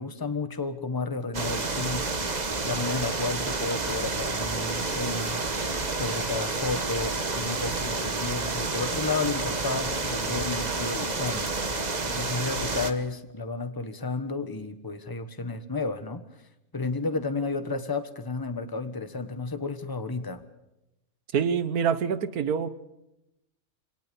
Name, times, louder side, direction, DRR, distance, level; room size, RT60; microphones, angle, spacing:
voice 1, 0.0-2.1 2.6-5.4 5.9-11.6 12.0-16.2 16.7-20.4, left 3 dB, 15° left, 9 dB, 1.3 m, -32 dB
sound 1, 1.3-12.9, right 3 dB, 30° right, 1.4 m, -29 dB
voice 2, 21.3-22.7, right 7 dB, 85° right, 14 dB, 1.6 m, -26 dB
27.0 x 18.5 x 7.0 m, 0.90 s
omnidirectional pair, 1.5 m